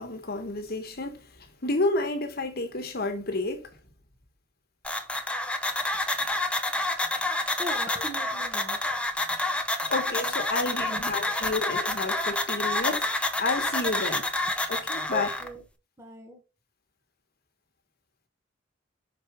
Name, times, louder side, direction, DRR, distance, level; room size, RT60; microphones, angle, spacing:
voice 1, 0.0-3.7 7.9-8.0 9.9-13.1 13.4-14.2 14.7-15.3, left 2 dB, 55° left, 1.4 m, -30 dB
sound 1, 4.8-15.5, left 2 dB, 5° left, 0.8 m, -28 dB
voice 2, 7.6-8.8 10.9-11.7 15.1-15.6 16.0-16.4, left 1 dB, 15° right, 1.3 m, -40 dB
6.0 x 4.8 x 4.5 m
head